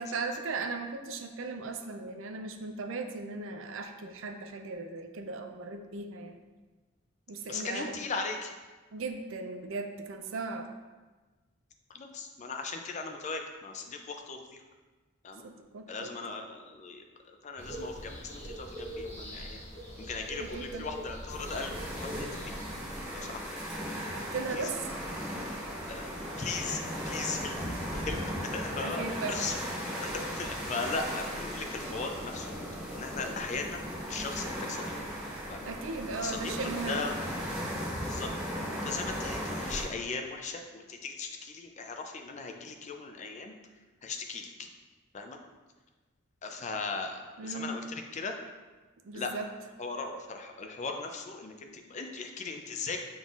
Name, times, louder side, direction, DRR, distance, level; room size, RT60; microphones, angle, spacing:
voice 1, 0.0-6.4 7.3-7.9 8.9-10.7 15.4-16.1 20.4-20.9 24.1-25.0 28.4-28.5 28.8-29.5 35.6-37.1 47.4-47.7 49.0-49.5, right 3 dB, 70° right, 5 dB, 0.4 m, -37 dB
voice 2, 7.4-8.5 11.9-14.6 15.2-15.5 15.9-19.6 20.0-22.5 23.1-23.6 24.6-24.7 25.9-29.6 30.0-32.6 33.0-34.9 35.5-35.7 36.2-36.6 36.9-37.1 38.1-38.3 38.8-43.5 44.0-44.7 45.1-45.4 46.4-48.4 49.1-49.3 49.8-53.0, left 4 dB, 35° left, 4 dB, 0.4 m, -38 dB
sound 1, 17.6-23.0, equal, 15° left, 1.2 m, -42 dB
sound 2, 21.3-39.8, equal, 5° right, 0.9 m, -37 dB
5.4 x 3.9 x 2.4 m, 1.3 s
head